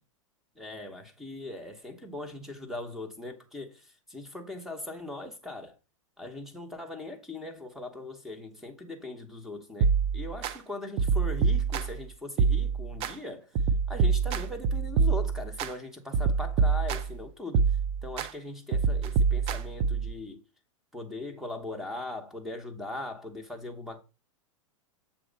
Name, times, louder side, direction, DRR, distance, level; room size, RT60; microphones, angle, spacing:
voice 1, 0.6-5.7 6.2-13.5 13.9-17.7 18.0-20.4 20.9-24.0, left 2 dB, ahead, 1.0 m, -40 dB
sound 1, 9.8-10.5 11.0-12.0 12.4-13.1 13.6-15.7 16.1-17.2 17.5-18.3 18.7-20.1, right 5 dB, 35° right, 0.6 m, -26 dB
7.1 x 3.0 x 5.2 m
supercardioid pair, 140°, 17 cm